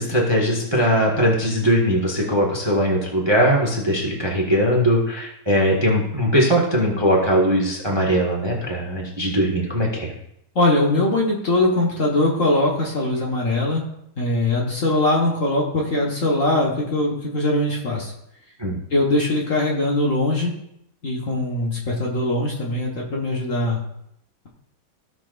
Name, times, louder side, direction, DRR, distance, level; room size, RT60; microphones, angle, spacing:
voice 1, 0.0-10.1 18.6-18.8, equal, 15° right, -1 dB, 1.2 m, -20 dB
voice 2, 10.5-13.8 14.2-18.1 18.9-20.5 21.0-23.8, left 2 dB, 45° left, -3 dB, 1.5 m, -21 dB
16.5 x 6.1 x 2.5 m, 0.77 s
omnidirectional pair, 2.2 m